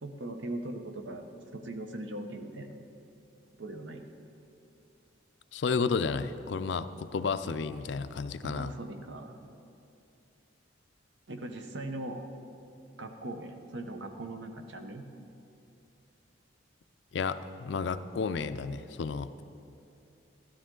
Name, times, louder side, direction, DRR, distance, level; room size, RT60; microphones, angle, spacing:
voice 1, 0.0-2.8 3.6-4.0 8.4-9.4 11.3-12.2 13.0-15.1, right 1 dB, 75° right, 6 dB, 0.9 m, -40 dB
voice 2, 5.5-8.7 17.1-19.3, left 5 dB, 65° left, 12 dB, 0.4 m, -32 dB
12.0 x 12.0 x 3.8 m, 2.6 s
head